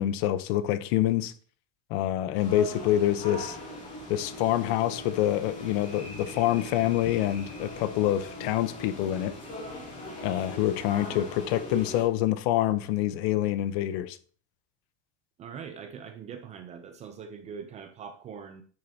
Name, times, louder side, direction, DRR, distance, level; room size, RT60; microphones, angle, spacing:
voice 1, 0.0-1.3 1.9-3.6 4.1-9.4 10.2-14.2, left 13 dB, 60° left, 0.7 m, -26 dB
sound 1, 2.4-12.0, left 1 dB, 20° left, 2.5 m, -40 dB
voice 2, 15.4-18.6, right 7 dB, 20° right, 0.4 m, -42 dB
10.5 x 6.5 x 2.7 m
cardioid pair, 170°, 36 cm